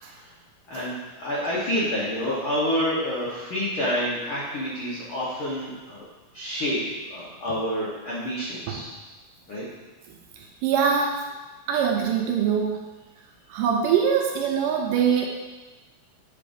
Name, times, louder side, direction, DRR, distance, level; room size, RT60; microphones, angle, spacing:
voice 1, 0.7-6.0 6.3-6.8 7.1-8.9 9.5-9.6, equal, 85° left, -8 dB, 1.1 m, -28 dB
voice 2, 10.6-11.1 11.7-12.8 13.5-15.3, right 7 dB, 80° right, 0 dB, 2.0 m, -23 dB
7.5 x 5.0 x 2.6 m, 1.2 s
omnidirectional pair, 4.1 m